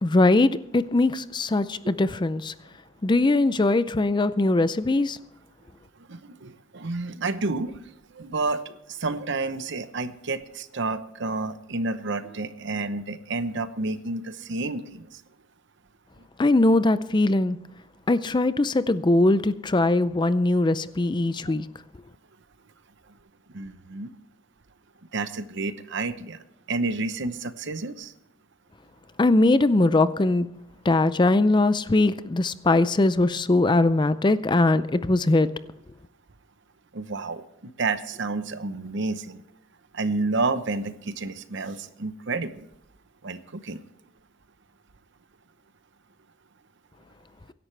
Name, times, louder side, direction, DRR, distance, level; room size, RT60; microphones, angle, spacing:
voice 1, 0.0-2.5 3.0-5.2 16.4-17.6 18.1-21.7 29.2-30.5 30.8-35.5, left 2 dB, 20° left, 0.4 m, -21 dB
voice 2, 6.1-15.2 21.5-21.6 23.5-24.1 25.1-26.4 26.7-28.1 36.9-39.4 39.9-42.7 43.2-43.8, right 3 dB, 60° right, 0.9 m, -30 dB
23.5 x 11.0 x 3.3 m
head